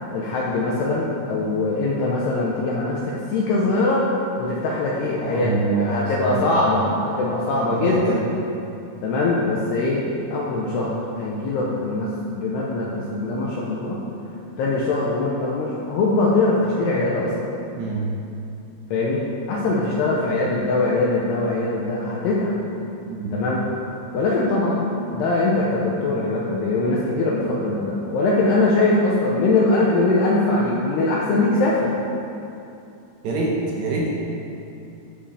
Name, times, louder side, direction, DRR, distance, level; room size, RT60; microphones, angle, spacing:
voice 1, 0.1-3.0 3.3-4.0 4.4-8.2 9.0-14.0 14.6-17.3 18.9-22.6 23.3-23.6 24.1-31.9, left 2 dB, 75° left, -4 dB, 2.5 m, -22 dB
voice 2, 5.2-5.9 6.3-6.5 7.7-8.2 17.8-18.1 23.1-23.3 33.2-34.1, right 4 dB, 70° right, -3 dB, 2.9 m, -25 dB
12.5 x 11.0 x 3.5 m, 2.7 s
omnidirectional pair, 5.9 m